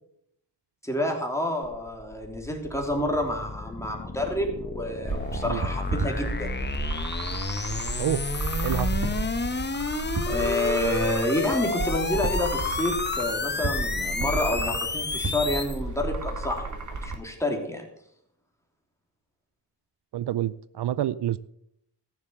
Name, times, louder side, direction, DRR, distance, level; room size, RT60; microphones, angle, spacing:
voice 1, 0.8-6.6 10.3-17.8, left 1 dB, 5° left, 1 dB, 3.1 m, -29 dB
sound 1, 1.6-15.8, left 3 dB, 25° left, 1.0 m, -31 dB
sound 2, 5.1-17.1, right 2 dB, 45° right, 1.9 m, -32 dB
voice 2, 20.1-21.4, right 12 dB, 75° right, 16 dB, 0.5 m, -27 dB
14.0 x 7.3 x 6.8 m, 0.75 s
wide cardioid pair, 90°, 41 cm